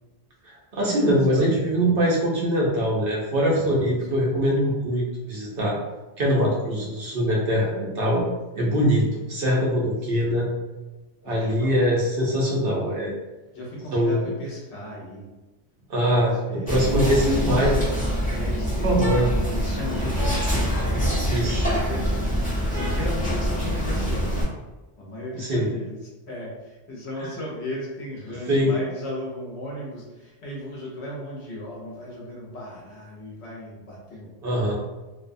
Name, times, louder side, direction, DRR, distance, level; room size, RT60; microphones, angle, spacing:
voice 1, 0.7-5.7 6.2-8.2 8.5-10.5 11.2-13.1 13.9-14.3 15.9-16.3 16.7-17.8 18.8-19.3 21.3-21.6 25.3-25.7 28.5-28.8 34.4-34.7, equal, 60° right, -3 dB, 0.7 m, -22 dB
voice 2, 1.3-2.0 3.5-4.5 4.7-4.9 10.2-10.4 11.2-12.0 13.5-15.3 16.1-17.7 18.3-24.4 25.0-34.7, left 1 dB, 70° left, -4 dB, 1.0 m, -36 dB
Whispering, 16.7-24.4, equal, 10° left, 0.8 m, -25 dB
2.5 x 2.2 x 2.5 m, 1.1 s
omnidirectional pair, 1.2 m